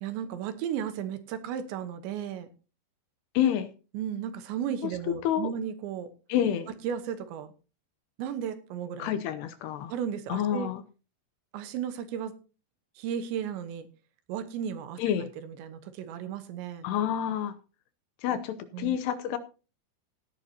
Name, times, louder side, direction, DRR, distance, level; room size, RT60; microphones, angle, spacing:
voice 1, 0.0-2.5 3.9-6.1 6.8-7.5 8.2-9.1 9.9-10.7 11.5-12.4 13.0-13.9 14.3-15.0 15.4-16.9 18.7-19.0, right 9 dB, 80° right, 10 dB, 3.3 m, -34 dB
voice 2, 3.3-3.7 4.8-4.9 5.2-5.5 6.3-6.7 9.0-9.9 10.3-10.8 15.0-15.3 16.8-17.6 18.2-19.4, left 10 dB, 75° left, 10 dB, 2.6 m, -28 dB
17.5 x 10.5 x 2.9 m, 0.34 s
omnidirectional pair, 5.4 m